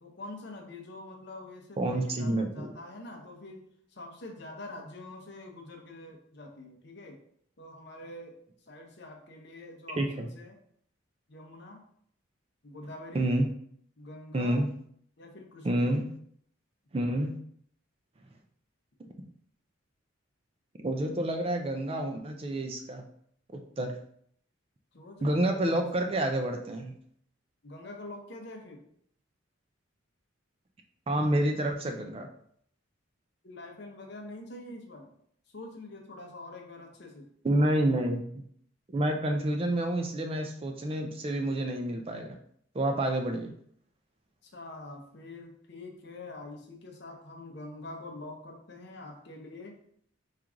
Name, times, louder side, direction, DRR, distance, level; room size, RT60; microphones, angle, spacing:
voice 1, 0.0-3.6 3.9-7.2 7.6-8.4 8.7-10.6 11.3-11.8 12.6-13.4 14.0-14.6 15.2-15.8 24.9-25.9 27.6-28.8 33.4-35.1 35.5-37.3 44.4-49.8, left 2 dB, 55° left, 3 dB, 0.7 m, -45 dB
voice 2, 1.8-2.7 10.0-10.3 13.1-13.5 14.3-14.7 15.6-16.1 16.9-17.3 20.8-23.0 23.5-23.9 25.2-26.9 31.1-32.3 37.4-38.2 38.9-42.3 42.7-43.5, right 1 dB, 25° right, 4 dB, 0.4 m, -28 dB
4.5 x 2.4 x 3.7 m, 0.64 s
head